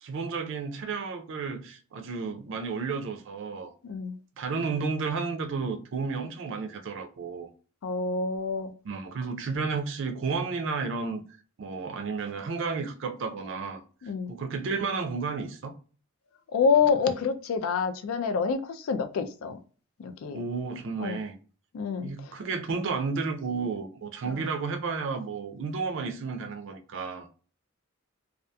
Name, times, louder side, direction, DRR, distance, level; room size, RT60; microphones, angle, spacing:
voice 1, 0.0-3.7 4.4-7.5 8.8-11.2 11.6-13.8 14.3-15.7 20.3-21.3 22.0-27.3, right 4 dB, 60° right, 0.4 m, -32 dB
voice 2, 3.8-4.2 7.8-8.7 14.0-14.3 16.5-19.6 20.0-20.4 21.0-21.2 21.7-22.4 24.3-24.4, left 5 dB, 85° left, 0.4 m, -27 dB
2.7 x 2.3 x 2.2 m
head